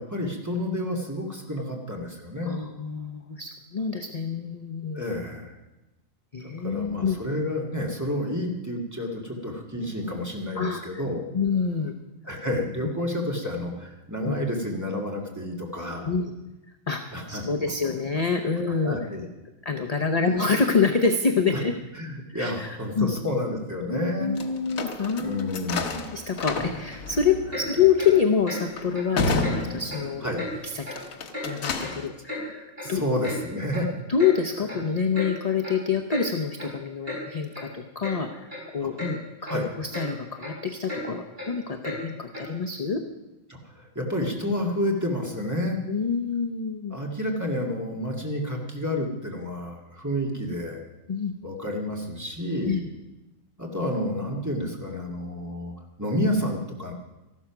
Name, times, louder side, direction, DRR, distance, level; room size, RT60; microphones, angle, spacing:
voice 1, 0.0-2.5 4.9-5.6 6.6-11.3 12.2-16.1 17.1-17.7 18.8-19.3 21.5-21.6 22.0-24.3 25.2-26.1 30.2-30.4 32.8-33.9 38.8-38.9 39.4-39.7 43.5-45.8 46.9-50.8 51.4-52.8 53.6-56.9, left 1 dB, 15° right, -1 dB, 2.1 m, -30 dB
voice 2, 2.5-5.0 6.3-7.2 10.6-11.0 11.3-12.0 14.2-14.3 16.0-16.3 16.9-17.0 17.3-19.0 19.6-21.7 22.3-22.7 22.9-23.1 23.9-25.5 26.1-30.3 30.7-30.9 31.5-33.0 34.1-43.0 45.9-46.9 51.1-51.3 52.7-52.9, left 6 dB, 35° left, 4 dB, 0.8 m, -26 dB
sound 1, 24.4-30.4 30.9-32.1, left 3 dB, 85° left, 1.5 m, -31 dB
Clock, 27.5-27.7 28.0-28.1 28.4-28.6 28.9-29.1 29.4-29.6 29.9-30.0 30.4-30.5 30.8-31.0 31.3-31.5 31.8-32.4 32.8-32.9 33.2-33.4 33.7-33.9 34.2-34.3 34.7-34.8 35.1-35.3 35.6-35.8 36.1-36.3 36.6-36.7 37.0-37.2 37.5-37.6 38.0-38.2 38.5-38.7 39.0-39.1 39.5-39.6 39.9-40.1 40.4-40.5 40.9-41.0 41.4-41.5 41.8-42.0 42.3-42.5, left 1 dB, 45° right, 4.8 m, -35 dB
14.0 x 12.0 x 6.0 m, 1.0 s
omnidirectional pair, 1.4 m